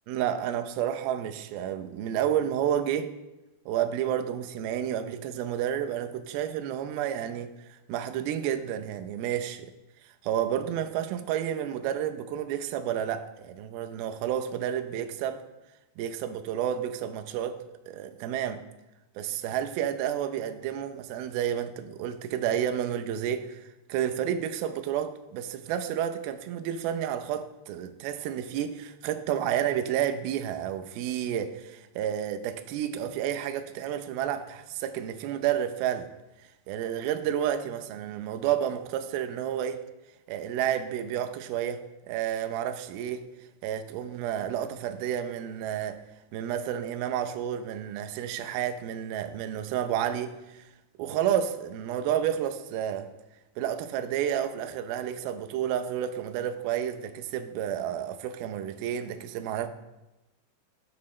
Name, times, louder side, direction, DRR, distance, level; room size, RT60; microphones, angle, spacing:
voice 1, 0.1-3.1 3.7-9.7 10.2-15.4 16.0-17.6 17.9-18.6 19.2-36.1 36.7-39.8 40.3-43.2 43.6-46.0 46.3-50.7 51.0-53.1 53.6-59.7, right 10 dB, 85° right, 2.1 m, -30 dB
20.0 x 6.7 x 3.2 m
omnidirectional pair, 5.3 m